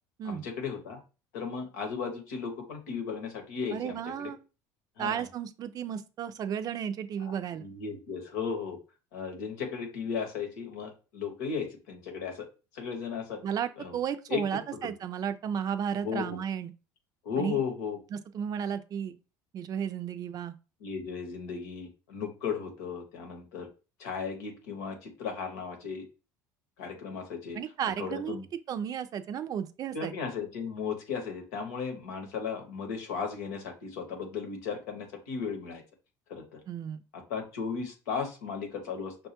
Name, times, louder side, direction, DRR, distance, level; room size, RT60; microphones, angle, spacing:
voice 1, 0.2-1.0 1.3-4.3 5.0-5.2 7.2-7.3 7.6-8.8 9.1-12.4 12.7-13.4 13.8-14.0 14.3-14.4 16.0-16.4 17.2-18.0 20.8-23.7 24.0-26.0 26.8-27.6 28.0-28.4 29.9-35.8 36.3-36.6 37.1-39.3, left 6 dB, 90° left, 1.0 m, -35 dB
voice 2, 3.7-4.4 5.0-7.6 13.4-16.7 17.4-17.6 18.1-19.2 19.5-20.5 27.5-28.4 28.7-30.1 36.7-37.0, right 8 dB, 45° right, 0.4 m, -33 dB
5.4 x 2.2 x 2.8 m
supercardioid pair, 90°, 9 cm